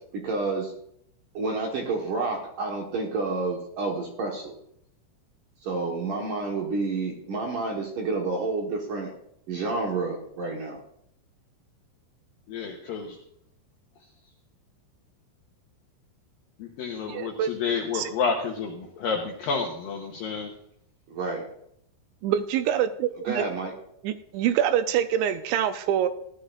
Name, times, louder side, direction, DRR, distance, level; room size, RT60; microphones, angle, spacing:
voice 1, 0.1-0.7 1.3-4.6 5.6-9.1 9.5-10.8 21.1-21.4 23.2-23.7, right 3 dB, 65° right, 0 dB, 2.2 m, -29 dB
voice 2, 12.5-13.2 16.6-20.5, left 5 dB, 80° left, 1 dB, 2.1 m, -30 dB
voice 3, 17.1-17.5 17.9-18.1 22.2-23.5 24.0-26.1, right 10 dB, 80° right, 9 dB, 2.8 m, -25 dB
17.5 x 11.5 x 2.5 m, 0.73 s
omnidirectional pair, 5.4 m